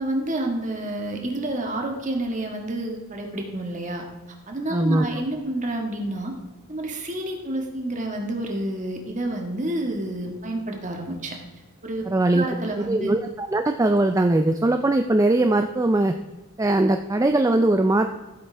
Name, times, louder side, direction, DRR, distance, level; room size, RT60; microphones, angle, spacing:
voice 1, 0.0-4.1 4.5-6.3 6.7-11.4 11.8-12.1 12.3-13.1, right 1 dB, 35° right, 2 dB, 1.6 m, -29 dB
voice 2, 4.7-5.1 12.1-12.4 12.8-16.1 16.6-18.2, right 2 dB, 15° right, 6 dB, 0.3 m, -20 dB
14.5 x 7.7 x 3.4 m, 1.2 s
head